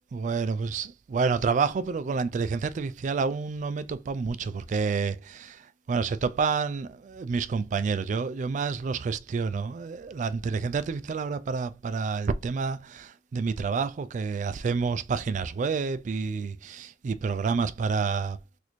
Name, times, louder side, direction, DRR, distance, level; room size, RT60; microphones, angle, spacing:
voice 1, 0.1-5.6 5.9-18.4, right 5 dB, 45° right, 0.3 m, -29 dB
4.1 x 2.6 x 3.0 m
head